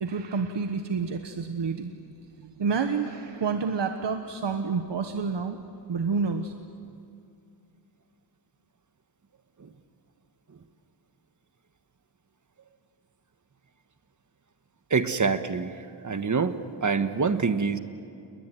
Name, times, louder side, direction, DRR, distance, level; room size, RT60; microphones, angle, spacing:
voice 1, 0.0-2.1 2.4-5.6 5.9-6.5, right 5 dB, 75° right, 6 dB, 1.4 m, -29 dB
voice 2, 14.9-15.8 16.0-17.8, right 5 dB, 45° right, 9 dB, 1.4 m, -26 dB
29.5 x 21.5 x 9.2 m, 2.5 s
wide cardioid pair, 95°, 43 cm